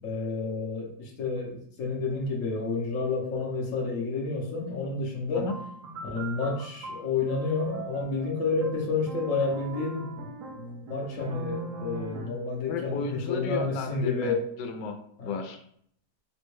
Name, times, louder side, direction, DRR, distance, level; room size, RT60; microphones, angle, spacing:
voice 1, 0.0-5.5 6.0-10.3 10.6-14.4 15.2-15.3, left 3 dB, 60° left, 0 dB, 0.9 m, -30 dB
sound 1, 5.5-12.6, right 2 dB, 70° right, 0.8 m, -41 dB
voice 2, 12.7-15.6, left 5 dB, 85° left, 5 dB, 1.2 m, -34 dB
3.5 x 2.1 x 3.0 m, 0.66 s
omnidirectional pair, 1.9 m